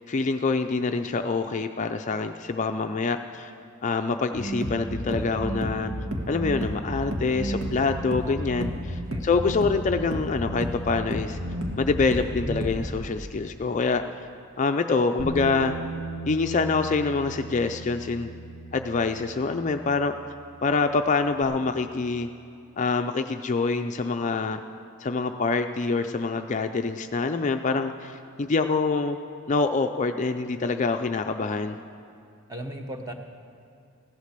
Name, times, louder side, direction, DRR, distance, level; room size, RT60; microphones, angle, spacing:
voice 1, 0.1-3.5 3.8-5.9 6.3-11.4 11.8-14.1 14.6-15.7 16.3-18.3 18.7-20.2 20.6-22.3 22.8-24.6 25.0-29.2 29.5-31.8, left 4 dB, 35° left, 6 dB, 0.4 m, -26 dB
sound 1, 4.3-12.9, equal, 75° right, 1.8 m, -31 dB
voice 2, 8.2-8.8 9.1-9.3 32.5-33.1, right 1 dB, 15° right, 4 dB, 1.0 m, -37 dB
Bass guitar, 15.2-21.4, right 2 dB, 60° right, 2.9 m, -38 dB
16.0 x 11.5 x 6.7 m, 2.5 s
head